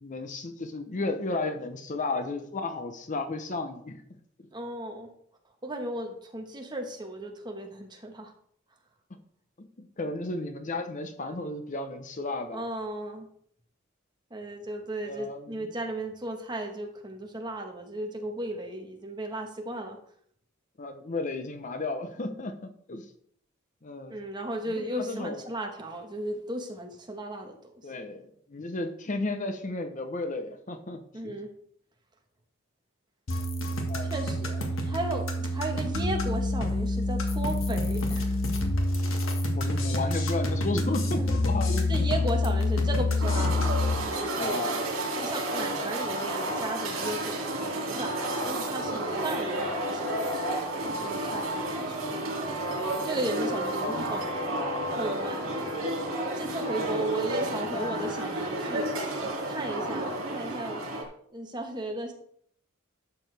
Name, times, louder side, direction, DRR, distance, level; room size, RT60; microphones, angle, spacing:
voice 1, 0.0-4.0 9.6-12.6 15.0-15.7 20.8-23.0 23.8-24.2 24.7-25.4 27.8-31.4 33.9-34.1 39.6-42.0 44.4-44.8 53.8-54.2 56.7-57.4 57.7-58.0, left 2 dB, 40° left, 7 dB, 0.8 m, -34 dB
voice 2, 4.5-5.1 5.6-8.3 12.5-13.3 14.3-20.0 24.1-27.7 31.1-31.5 34.0-38.4 41.1-41.3 41.9-43.7 44.2-44.7 45.2-48.1 48.4-50.5 51.0-52.3 53.0-54.3 54.9-55.5 56.3-59.1 59.5-60.8 61.3-62.1, right 1 dB, 20° right, 3 dB, 1.3 m, -35 dB
sound 1, 33.3-43.9, left 2 dB, 75° left, 1.6 m, -27 dB
sound 2, 43.2-61.0, right 1 dB, 80° right, 2.8 m, -31 dB
11.5 x 7.0 x 3.4 m, 0.65 s
head